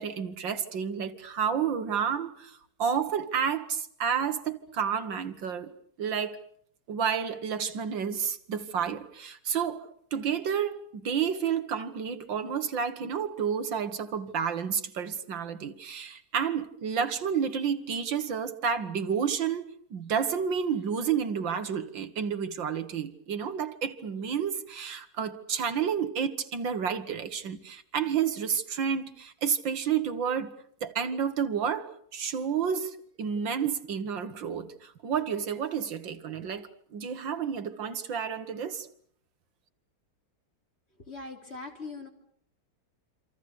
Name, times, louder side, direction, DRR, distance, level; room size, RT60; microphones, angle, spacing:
voice 1, 0.0-5.7 6.0-6.4 6.9-19.6 19.9-30.5 30.8-38.9, right 7 dB, 70° right, 2.1 m, -30 dB
voice 2, 41.1-42.1, left 3 dB, 30° left, 3.7 m, -40 dB
27.5 x 26.5 x 6.7 m
omnidirectional pair, 2.2 m